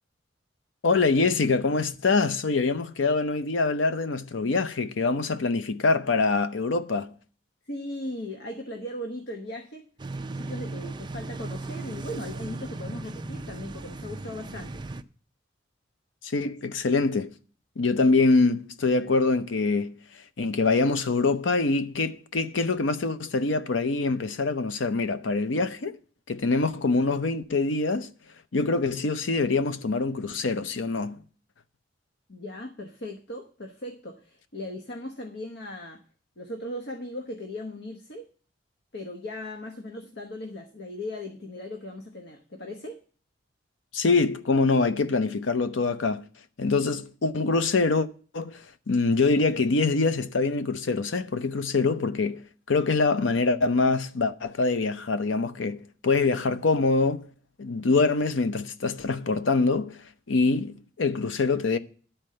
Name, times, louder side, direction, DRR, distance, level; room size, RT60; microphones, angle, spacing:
voice 1, 0.8-7.1 16.2-17.3 17.8-19.9 20.4-26.0 26.3-28.1 28.5-31.2 43.9-46.2 46.6-48.1 48.3-57.3 57.6-60.0 60.3-61.8, left 3 dB, 85° left, 0.7 m, -24 dB
voice 2, 7.6-9.8 10.3-14.8 32.3-36.0 36.4-38.3 38.9-43.0, left 1 dB, 60° left, 1.1 m, -38 dB
sound 1, 10.0-15.0, right 2 dB, 25° right, 0.5 m, -37 dB
11.0 x 4.4 x 7.6 m
head